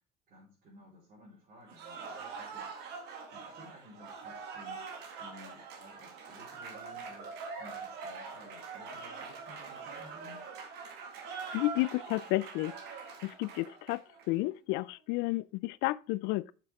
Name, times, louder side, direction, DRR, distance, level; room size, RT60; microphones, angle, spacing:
voice 1, 0.3-2.7 3.3-4.9 5.2-10.5, equal, 45° right, 4.0 m, -55 dB
Cheering / Applause, 1.7-14.3, right 5 dB, 75° right, 1.9 m, -44 dB
voice 2, 11.5-12.7 13.2-16.5, left 20 dB, 85° left, 0.4 m, -32 dB
7.8 x 6.7 x 3.6 m
cardioid pair, 145°, 18 cm